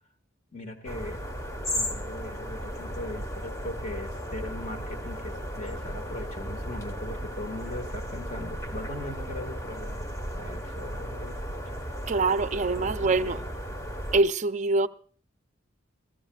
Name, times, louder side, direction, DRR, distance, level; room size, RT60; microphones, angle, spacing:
voice 1, 0.5-1.2 1.7-10.1 10.3-11.4 12.8-13.4, left 1 dB, 40° left, 1.9 m, -39 dB
sound 1, 0.9-14.2, equal, 15° left, 1.2 m, -35 dB
voice 2, 12.1-13.4 14.1-14.9, right 3 dB, 35° right, 0.5 m, -24 dB
23.0 x 14.0 x 2.4 m
head